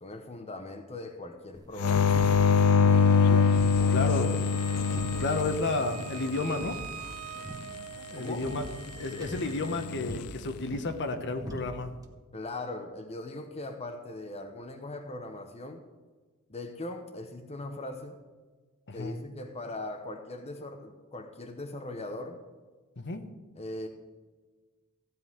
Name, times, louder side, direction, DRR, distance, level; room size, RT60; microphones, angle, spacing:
voice 1, 0.0-2.2 2.8-4.0 4.3-4.6 8.2-8.5 12.3-15.8 16.5-18.2 18.9-22.4 23.5-23.9, left 2 dB, 30° left, 5 dB, 0.9 m, -40 dB
sound 1, 1.5-12.1, equal, 15° right, 1.4 m, -44 dB
sound 2, 1.8-6.4 9.7-10.2, left 6 dB, 85° left, 0.4 m, -24 dB
Wind instrument woodwind instrument, 2.0-9.9, right 8 dB, 85° right, 0.8 m, -43 dB
voice 2, 3.9-4.4 5.2-6.8 8.1-8.6 9.0-11.9 18.9-19.2 23.0-23.3, left 3 dB, 55° left, 8 dB, 1.1 m, -31 dB
15.0 x 5.5 x 9.7 m, 1.4 s
head